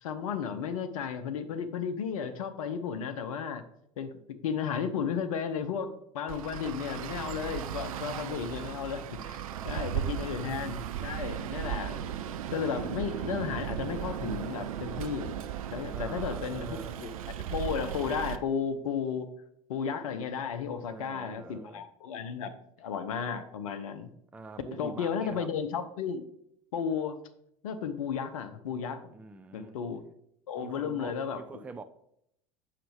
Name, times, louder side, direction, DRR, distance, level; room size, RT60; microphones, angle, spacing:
voice 1, 0.0-3.6 4.0-4.1 4.4-12.1 12.5-15.3 15.7-17.1 17.5-19.3 19.7-22.5 22.8-24.1 24.8-26.2 26.7-27.2 27.6-29.0 29.5-30.0 30.5-31.4, left 7 dB, 65° left, 0.7 m, -34 dB
Traffic noise roadway noise, 6.3-18.4, right 10 dB, 65° right, 0.5 m, -36 dB
voice 2, 9.5-10.4 15.9-16.9 20.9-21.8 24.3-25.5 29.1-29.8 30.6-31.8, right 4 dB, 5° right, 0.4 m, -45 dB
7.7 x 5.6 x 3.4 m
figure-of-eight pair, 75°, 19 cm